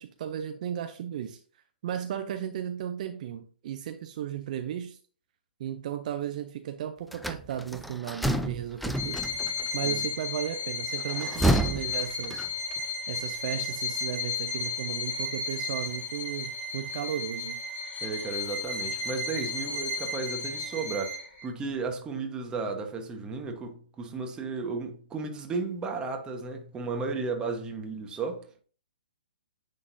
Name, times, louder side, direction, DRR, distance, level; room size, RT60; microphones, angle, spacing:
voice 1, 0.0-1.4 1.8-5.0 5.6-9.2 9.7-12.5 13.1-17.6, right 10 dB, 50° right, 0.6 m, -35 dB
sound 1, 7.1-9.7 11.0-12.8, right 1 dB, ahead, 0.4 m, -29 dB
Bowed string instrument, 8.9-21.4, left 3 dB, 30° left, 3.4 m, -34 dB
voice 2, 18.0-28.5, right 4 dB, 15° right, 1.1 m, -34 dB
9.7 x 3.8 x 2.6 m
hypercardioid pair, 135°, 5 cm